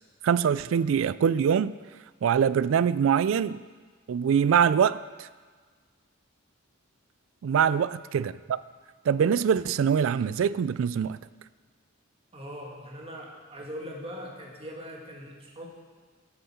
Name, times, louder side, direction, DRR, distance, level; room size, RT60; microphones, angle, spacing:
voice 1, 0.2-1.7 2.2-3.6 4.1-5.3 7.4-8.6 9.1-11.2, right 7 dB, 75° right, 17 dB, 0.3 m, -24 dB
voice 2, 12.3-15.7, equal, 30° right, -1 dB, 1.7 m, -41 dB
13.5 x 7.5 x 4.4 m, 1.5 s
head